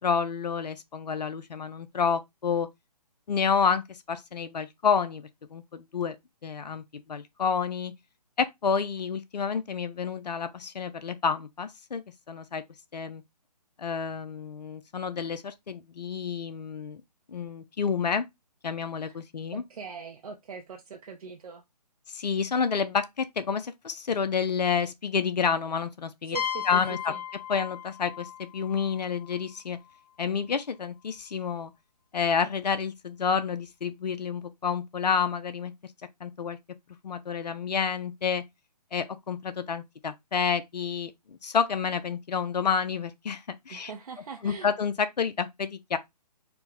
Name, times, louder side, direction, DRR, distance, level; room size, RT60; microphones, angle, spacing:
voice 1, 0.0-2.7 3.3-6.2 6.4-6.8 7.1-7.9 8.4-12.6 12.9-13.2 13.8-17.0 17.3-18.3 18.6-19.6 22.1-26.4 26.7-27.1 27.5-29.8 30.2-31.7 32.1-35.7 36.2-36.6 37.0-38.4 38.9-43.9 44.4-46.0, left 6 dB, 80° left, 0.5 m, -29 dB
voice 2, 19.5-21.6 26.3-27.2 43.7-44.7, right 6 dB, 60° right, 0.7 m, -41 dB
sound 1, 26.3-30.0, left 9 dB, 65° left, 1.0 m, -37 dB
4.4 x 2.2 x 3.9 m
figure-of-eight pair, 140°, 21 cm